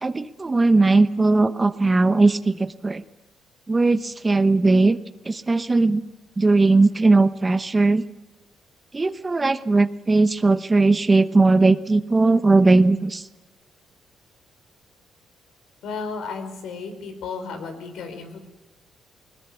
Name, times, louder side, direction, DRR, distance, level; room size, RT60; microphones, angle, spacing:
voice 1, 0.0-3.0 3.7-5.0 5.3-6.0 6.4-8.0 8.9-13.2, right 3 dB, 25° right, 12 dB, 1.0 m, -18 dB
voice 2, 15.8-18.4, left 4 dB, 80° left, 7 dB, 4.4 m, -33 dB
20.5 x 20.0 x 8.3 m, 1.1 s
cardioid pair, 90°, 0 cm